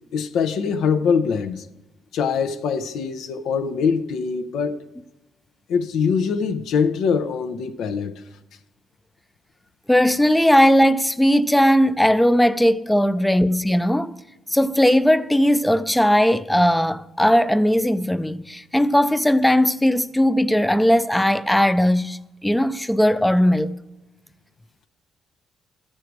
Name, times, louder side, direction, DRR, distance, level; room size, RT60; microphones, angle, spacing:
voice 1, 0.1-1.7 2.1-4.8 5.7-8.2, left 6 dB, 80° left, 0.6 m, -23 dB
voice 2, 9.9-14.1 14.5-23.8, equal, 5° left, 0.4 m, -18 dB
13.5 x 6.5 x 4.7 m
cardioid pair, 90°, 0 cm